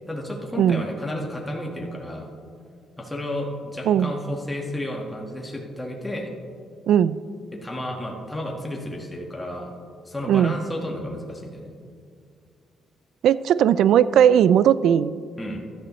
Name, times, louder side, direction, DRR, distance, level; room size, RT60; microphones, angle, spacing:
voice 1, 0.1-2.3 3.0-6.3 7.5-9.7 10.0-11.7 15.4-15.6, left 1 dB, 15° left, 0 dB, 1.6 m, -32 dB
voice 2, 6.9-7.2 10.3-10.6 13.2-15.1, right 9 dB, 75° right, 17 dB, 0.3 m, -18 dB
15.5 x 11.0 x 3.1 m, 2.2 s
cardioid pair, 90°, 0 cm